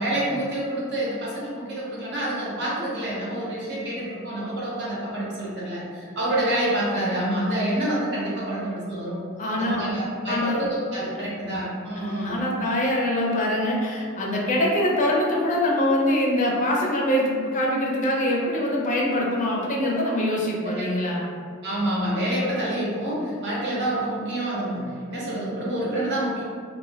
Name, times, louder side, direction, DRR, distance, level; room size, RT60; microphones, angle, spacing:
voice 1, 0.0-9.2 9.6-12.4 20.8-20.9 21.6-26.4, right 1 dB, 55° right, -6 dB, 0.9 m, -27 dB
voice 2, 9.4-9.9 10.2-10.7 11.1-11.3 11.9-21.3, left 1 dB, 35° left, -3 dB, 0.5 m, -24 dB
2.5 x 2.1 x 3.8 m, 2.1 s
head